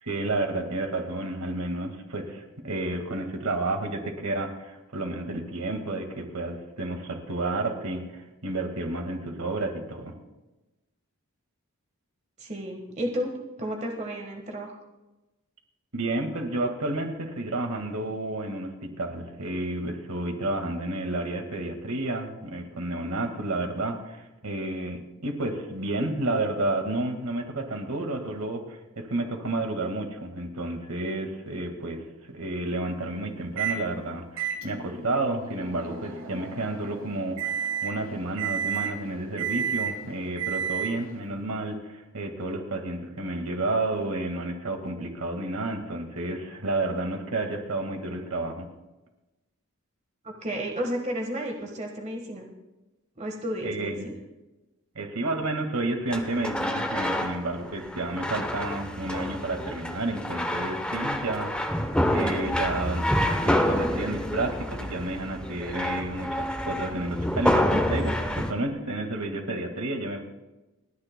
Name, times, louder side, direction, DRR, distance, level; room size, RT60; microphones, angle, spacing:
voice 1, 0.0-10.1 15.9-48.7 53.6-54.1 55.0-70.2, right 2 dB, 85° right, 4 dB, 1.8 m, -31 dB
voice 2, 12.4-14.7 50.2-52.5 53.2-54.1, equal, 30° right, 2 dB, 1.4 m, -32 dB
Microwave oven, 33.6-33.8 34.4-41.2, right 7 dB, 65° right, 1.4 m, -32 dB
sound 1, 56.1-68.5, equal, 5° left, 0.8 m, -28 dB
29.5 x 10.0 x 2.2 m, 1.0 s
head